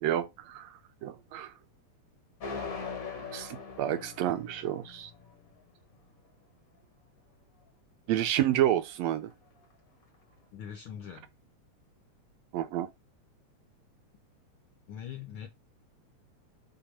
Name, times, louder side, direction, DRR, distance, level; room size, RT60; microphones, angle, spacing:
voice 1, 0.0-0.7 1.0-1.5 3.3-5.1 8.1-9.3 12.5-12.9, right 12 dB, 75° right, 1.7 m, -29 dB
sound 1, 2.4-5.3, left 5 dB, 45° left, 1.1 m, -40 dB
voice 2, 10.5-11.3 14.9-15.5, left 9 dB, 70° left, 1.2 m, -42 dB
5.9 x 3.6 x 5.6 m
omnidirectional pair, 3.3 m